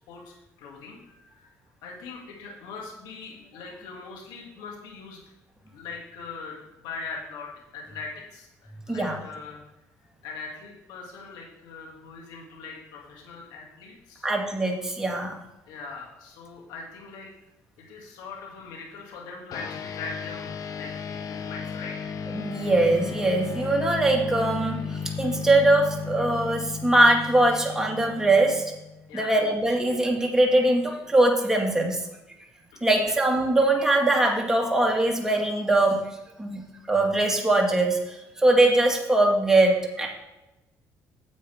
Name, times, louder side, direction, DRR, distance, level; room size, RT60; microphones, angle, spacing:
voice 1, 0.1-1.5 1.8-5.2 5.7-9.6 10.2-14.3 15.7-17.3 17.8-22.1 29.1-29.3 32.7-33.1, left 4 dB, 85° left, -1 dB, 2.5 m, -41 dB
voice 2, 14.2-15.4 22.3-28.7 29.1-32.0 32.8-36.1 36.4-40.1, right 2 dB, 5° right, 0 dB, 2.0 m, -22 dB
sound 1, 19.5-29.2, left 6 dB, 55° left, 0.8 m, -35 dB
9.5 x 7.8 x 3.6 m, 0.95 s
cardioid pair, 85°, 7 cm